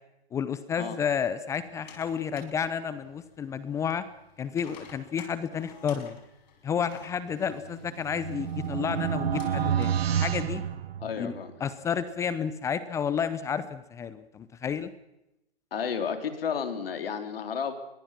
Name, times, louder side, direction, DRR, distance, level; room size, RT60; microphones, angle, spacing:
voice 1, 0.3-4.0 4.4-6.2 6.6-10.6 11.2-11.3 11.6-14.9, left 7 dB, 10° left, 14 dB, 0.7 m, -31 dB
sound 1, 1.5-10.0, left 6 dB, 40° left, 5.7 m, -53 dB
sound 2, 7.5-11.5, right 9 dB, 65° right, 1.5 m, -29 dB
voice 2, 11.0-11.5 15.7-17.7, left 7 dB, 60° left, 7 dB, 4.1 m, -32 dB
24.5 x 22.5 x 6.0 m, 0.89 s
hypercardioid pair, 140°, 32 cm